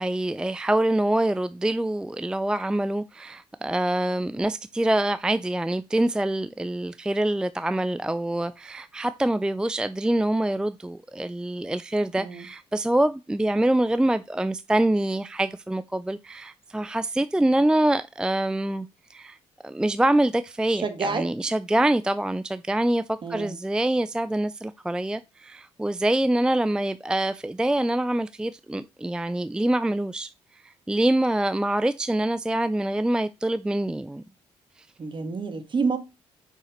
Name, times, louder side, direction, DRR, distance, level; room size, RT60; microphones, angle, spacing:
voice 1, 0.0-19.4 19.6-30.3 30.6-34.2 34.8-34.9, right 1 dB, 5° right, 0.3 m, -25 dB
voice 2, 20.7-21.3 23.2-23.6 35.0-36.0, right 4 dB, 40° right, 1.4 m, -28 dB
5.7 x 5.5 x 3.0 m
cardioid pair, 75°, 12 cm